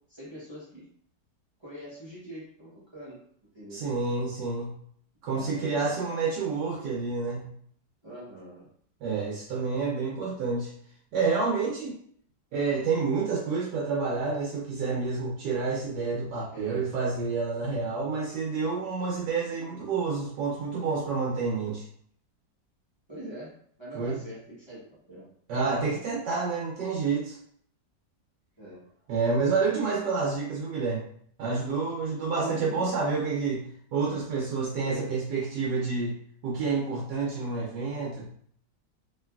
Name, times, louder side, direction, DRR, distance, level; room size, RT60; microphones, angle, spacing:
voice 1, 0.1-0.9 1.6-3.2 3.5-3.8 5.3-6.8 8.0-8.7 16.5-16.8 23.1-23.5 23.8-25.2 28.6-28.9 32.3-32.8 34.9-35.1, right 1 dB, 25° right, -8 dB, 0.6 m, -43 dB
voice 2, 3.7-4.7 5.2-7.5 9.0-10.7 11.1-12.0 12.5-21.8 23.9-24.2 25.5-27.4 29.1-31.1 31.4-33.6 33.9-36.1 36.4-38.3, right 4 dB, 85° right, -3 dB, 1.3 m, -29 dB
3.1 x 2.8 x 2.2 m, 0.62 s
omnidirectional pair, 1.8 m